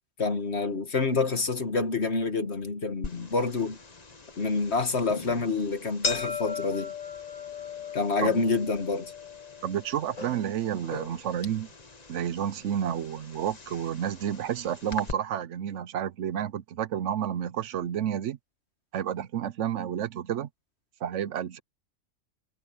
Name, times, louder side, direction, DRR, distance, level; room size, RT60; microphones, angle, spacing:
voice 1, 0.2-3.8 4.4-6.9 7.9-9.1, left 4 dB, 65° left, 2.1 m, -27 dB
sound 1, 3.0-15.1, left 5 dB, 35° left, 1.2 m, -39 dB
voice 2, 9.6-11.7 12.1-18.4 18.9-20.5 21.0-21.6, right 10 dB, 85° right, 1.0 m, -30 dB
omnidirectional pair, 1.2 m